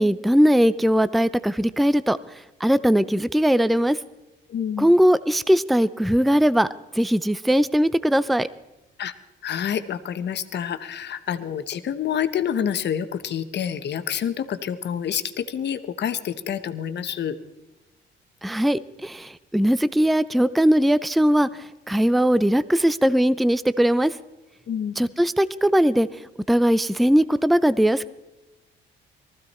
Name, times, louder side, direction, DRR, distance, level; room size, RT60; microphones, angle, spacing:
voice 1, 0.0-2.2 2.6-4.0 4.8-6.7 6.9-8.5 18.4-24.2 25.0-28.1, equal, ahead, 16 dB, 0.4 m, -20 dB
voice 2, 4.5-4.9 9.0-9.1 9.4-17.4 24.7-25.1, left 8 dB, 60° left, 11 dB, 1.1 m, -28 dB
19.5 x 15.0 x 4.3 m, 0.98 s
cardioid pair, 90°, 20 cm